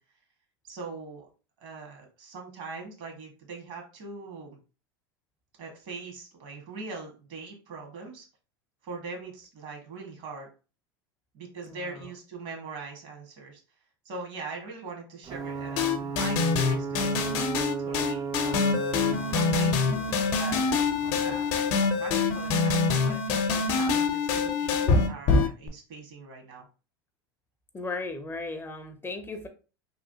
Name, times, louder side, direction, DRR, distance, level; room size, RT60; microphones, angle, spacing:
voice 1, 0.6-1.3 1.6-4.6 5.6-8.3 8.8-10.5 11.3-13.6 14.0-18.7 19.3-26.7, right 4 dB, 60° right, 2 dB, 1.4 m, -42 dB
voice 2, 11.7-12.1 27.7-29.5, left 3 dB, 20° left, 6 dB, 0.5 m, -36 dB
Ocean / Boat Water vehicle / Alarm, 15.2-22.8, right 5 dB, 30° right, 0.4 m, -36 dB
sound 1, 15.8-25.7, left 4 dB, 60° left, 0.6 m, -25 dB
3.2 x 2.4 x 2.7 m, 0.34 s
hypercardioid pair, 105°, 12 cm